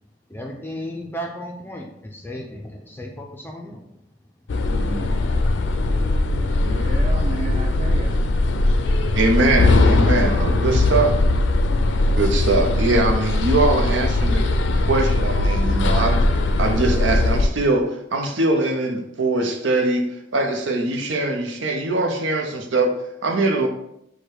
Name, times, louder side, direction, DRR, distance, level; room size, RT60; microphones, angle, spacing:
voice 1, 0.3-3.8, equal, 10° left, 1 dB, 0.4 m, -34 dB
sound 1, 4.5-17.5, left 2 dB, 80° left, 0.4 m, -19 dB
voice 2, 4.7-5.2 6.6-8.2, right 1 dB, 35° right, 0 dB, 0.6 m, -33 dB
voice 3, 9.1-11.2 12.2-14.5 14.9-16.2 16.6-23.7, right 2 dB, 85° right, 4 dB, 0.7 m, -22 dB
4.9 x 2.2 x 4.5 m, 0.77 s
head